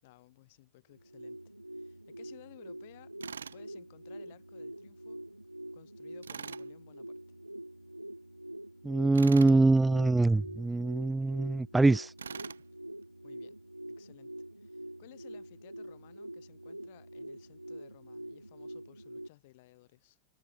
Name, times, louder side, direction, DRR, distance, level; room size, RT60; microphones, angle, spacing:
voice 1, 0.0-1.4 1.7-3.1 3.5-5.3 5.7-7.2 13.2-13.6 13.9-20.2, left 19 dB, 50° left, 7.7 m, -58 dB
sound 1, 0.9-19.3, right 1 dB, 85° right, 5.8 m, -46 dB
Tools, 3.2-3.6 6.2-6.7 9.2-9.6 12.2-12.6, right 7 dB, 70° right, 2.0 m, -42 dB
voice 2, 8.9-12.1, right 2 dB, 10° right, 0.4 m, -24 dB
figure-of-eight pair, 90°, 0 cm